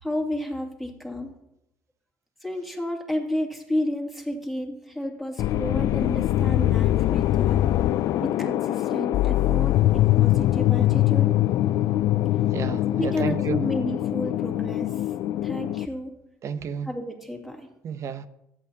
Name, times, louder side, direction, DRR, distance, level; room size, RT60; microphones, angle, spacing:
voice 1, 0.0-1.3 2.4-7.6 8.2-11.3 12.9-15.0 15.4-16.2 16.8-17.7, left 1 dB, ahead, -1 dB, 2.5 m, -31 dB
sound 1, 5.4-15.9, left 14 dB, 65° left, 0.3 m, -23 dB
voice 2, 12.5-13.7 16.4-16.9 17.8-18.3, right 7 dB, 50° right, 13 dB, 0.8 m, -32 dB
19.0 x 8.8 x 2.8 m, 0.84 s
supercardioid pair, 95°, 6 cm